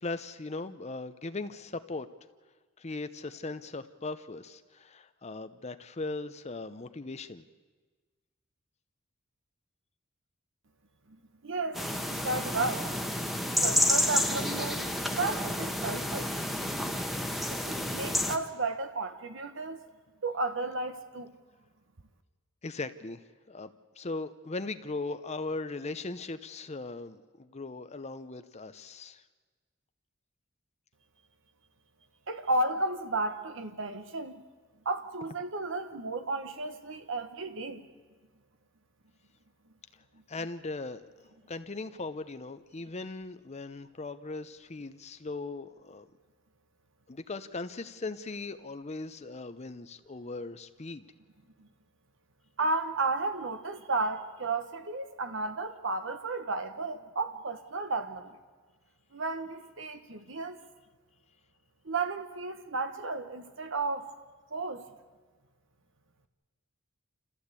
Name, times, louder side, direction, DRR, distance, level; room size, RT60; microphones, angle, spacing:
voice 1, 0.0-2.1 2.8-7.5 22.6-23.2 23.5-29.2 40.3-41.1 41.5-46.1 47.1-51.0, left 3 dB, 30° left, 0.7 m, -39 dB
voice 2, 11.4-12.9 13.6-16.6 17.5-19.8 20.2-21.3 32.3-34.4 34.8-37.9 51.6-51.7 52.6-58.4 59.1-60.6 61.8-64.1 64.5-64.8, right 3 dB, 65° right, 1.2 m, -33 dB
sound 1, 11.7-18.4, left 1 dB, ahead, 1.2 m, -30 dB
28.0 x 15.0 x 8.4 m
head